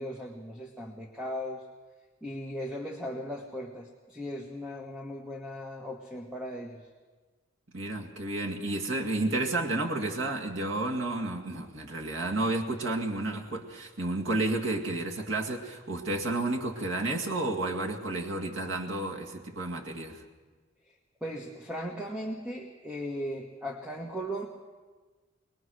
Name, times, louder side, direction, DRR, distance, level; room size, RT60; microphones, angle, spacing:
voice 1, 0.0-1.6 2.2-6.8 21.2-24.5, equal, 5° right, 1 dB, 1.3 m, -37 dB
voice 2, 7.7-20.2, right 2 dB, 70° right, 1 dB, 2.1 m, -31 dB
22.5 x 21.0 x 6.4 m, 1.4 s
head